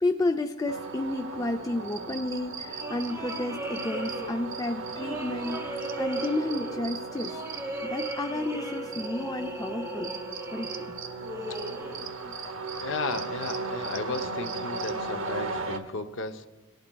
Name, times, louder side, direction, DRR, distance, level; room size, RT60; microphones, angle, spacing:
voice 1, 0.0-7.4 7.9-10.1 10.5-10.7 12.4-12.5, left 2 dB, 15° left, 5 dB, 0.3 m, -31 dB
sound 1, 0.7-15.8, right 4 dB, 60° right, 0.7 m, -36 dB
sound 2, 2.6-12.3, right 1 dB, 10° right, 0.8 m, -37 dB
voice 2, 12.8-16.5, left 3 dB, 55° left, 8 dB, 0.6 m, -34 dB
18.5 x 11.5 x 2.3 m, 1.2 s
head